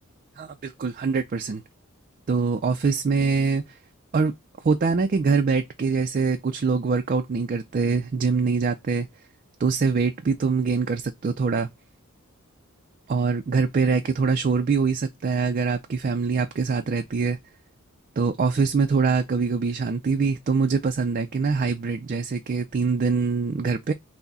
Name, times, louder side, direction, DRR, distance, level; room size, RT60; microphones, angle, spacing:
voice 1, 0.4-1.6 2.3-3.8 4.1-4.3 4.6-9.1 9.6-11.7 13.1-17.4 18.2-23.9, right 4 dB, 40° right, 0.4 m, -24 dB
5.8 x 2.1 x 4.0 m
head